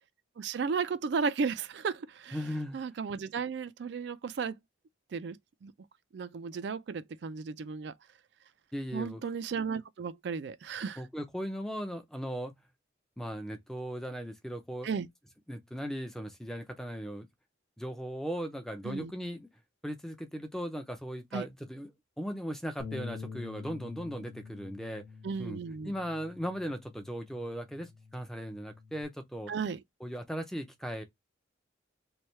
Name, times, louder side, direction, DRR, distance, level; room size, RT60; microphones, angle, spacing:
voice 1, 0.4-2.4 2.7-4.6 5.1-5.7 6.1-7.9 8.9-11.0 14.8-15.1 18.8-19.1 21.3-21.5 25.2-25.9 29.5-29.8, right 5 dB, 60° right, 0.4 m, -34 dB
voice 2, 2.3-2.8 8.7-9.2 11.0-12.6 13.2-14.9 15.5-17.3 17.8-19.5 19.8-21.9 22.2-25.0 25.4-25.6 25.8-29.5 30.0-31.0, equal, ahead, 0.5 m, -38 dB
Bass guitar, 22.8-29.0, left 5 dB, 45° left, 0.7 m, -46 dB
3.2 x 2.3 x 4.2 m
head